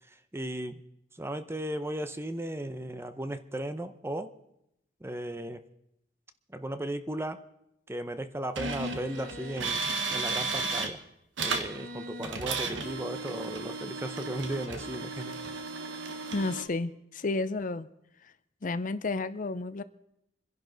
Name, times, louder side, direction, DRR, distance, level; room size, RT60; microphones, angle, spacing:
voice 1, 0.1-0.8 1.1-4.3 5.0-5.6 6.5-7.4 7.9-9.8 10.1-11.0 11.4-15.3, right 1 dB, 15° right, 11 dB, 0.7 m, -36 dB
sound 1, 8.6-10.9 11.4-16.6, right 3 dB, 85° right, 1.4 m, -34 dB
voice 2, 16.3-17.9 18.6-19.8, left 3 dB, 45° left, 14 dB, 0.6 m, -31 dB
27.0 x 11.0 x 4.0 m, 0.80 s
head